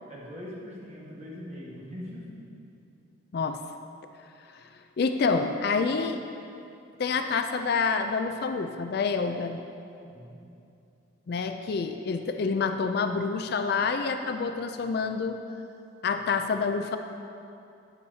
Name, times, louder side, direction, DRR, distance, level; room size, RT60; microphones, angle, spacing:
voice 1, 0.1-2.4 10.1-10.4, left 1 dB, 30° right, -6 dB, 1.4 m, -41 dB
voice 2, 5.0-6.2 7.0-9.6 11.3-15.4 16.0-17.0, left 4 dB, 50° left, 7 dB, 0.3 m, -27 dB
9.3 x 8.3 x 2.8 m, 2.7 s
head